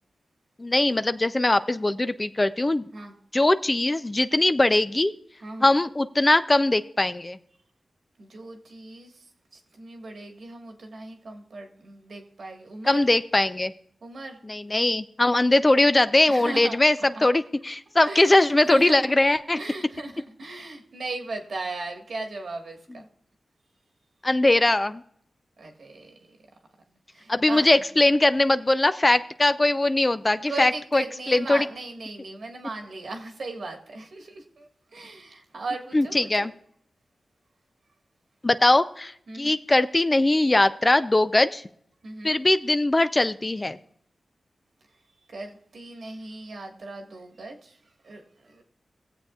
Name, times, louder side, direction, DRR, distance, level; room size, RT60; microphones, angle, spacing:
voice 1, 0.6-2.8 3.3-5.1 5.6-7.4 12.9-13.7 14.4-19.6 24.2-25.0 27.3-31.7 35.9-36.5 38.4-41.6 42.2-43.8, left 2 dB, 25° left, 12 dB, 0.4 m, -21 dB
voice 2, 5.4-5.7 8.2-9.2 9.5-13.1 14.0-14.4 16.3-17.2 18.0-19.1 19.6-23.1 25.6-26.4 27.1-27.8 30.5-36.5 39.3-39.6 42.0-42.3 45.3-47.8 48.0-48.6, right 2 dB, 75° right, 2 dB, 1.6 m, -37 dB
20.5 x 7.4 x 2.4 m, 0.67 s
cardioid pair, 60°, 0 cm